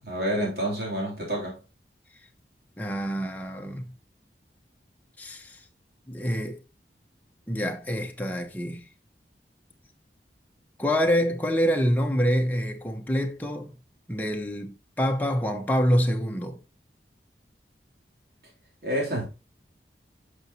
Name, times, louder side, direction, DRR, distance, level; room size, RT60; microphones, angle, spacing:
voice 1, 0.0-1.6 18.8-19.3, equal, 65° right, 3.1 m, -28 dB
voice 2, 2.8-3.9 5.2-5.6 6.1-6.6 7.5-8.9 10.8-13.7 14.1-16.6, equal, 10° left, 1.0 m, -26 dB
8.8 x 6.1 x 2.8 m
head